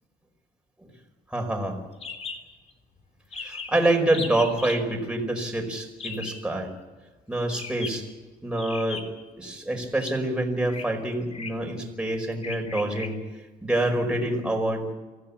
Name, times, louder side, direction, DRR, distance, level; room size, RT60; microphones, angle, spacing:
voice 1, 1.3-1.8 3.4-6.7 7.3-8.0 8.4-9.0 9.4-13.2 13.6-14.9, right 1 dB, 5° right, 2 dB, 5.1 m, -26 dB
sound 1, 2.0-2.4 2.7-2.8 3.0-3.1 3.3-3.8 4.1-4.8 6.0-6.5 7.5-8.0 8.6-9.3 9.9-10.1 10.7-10.9 11.3-11.7 12.4-13.1, left 4 dB, 40° left, 3.4 m, -37 dB
24.0 x 16.0 x 8.6 m, 1.3 s
cardioid pair, 110°, 17 cm